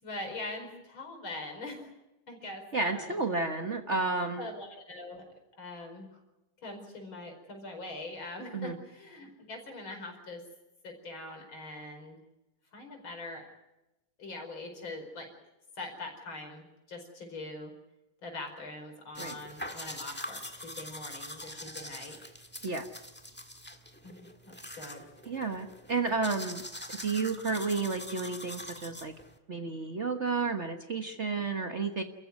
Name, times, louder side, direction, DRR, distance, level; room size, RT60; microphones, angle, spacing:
voice 1, 0.0-1.9 2.3-3.1 4.1-5.2 5.6-6.1 6.6-10.4 10.8-12.2 12.7-13.4 14.2-15.3 15.8-17.7 18.2-22.2 24.0-25.1, left 2 dB, 70° left, 3 dB, 5.7 m, -42 dB
voice 2, 2.7-4.5 8.5-8.8 19.2-19.4 22.6-22.9 25.2-29.1 29.5-32.0, right 4 dB, 40° right, 5 dB, 1.4 m, -32 dB
sound 1, 19.1-29.4, left 1 dB, 5° left, 1.4 m, -44 dB
29.0 x 15.0 x 9.6 m, 0.97 s
omnidirectional pair, 2.3 m